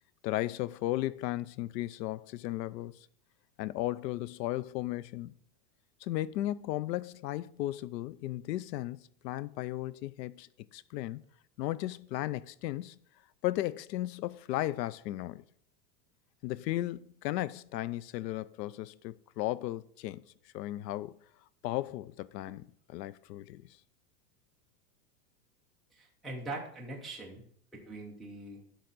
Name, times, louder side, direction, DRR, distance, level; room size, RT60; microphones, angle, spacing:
voice 1, 0.2-3.1 3.6-5.4 6.0-11.2 11.6-13.0 13.4-15.4 16.4-20.2 20.5-21.2 21.6-23.7, left 15 dB, 90° left, 0.6 m, -35 dB
voice 2, 25.9-27.4 27.7-28.6, right 2 dB, ahead, 0.5 m, -42 dB
11.5 x 3.9 x 4.0 m
supercardioid pair, 155°, 48 cm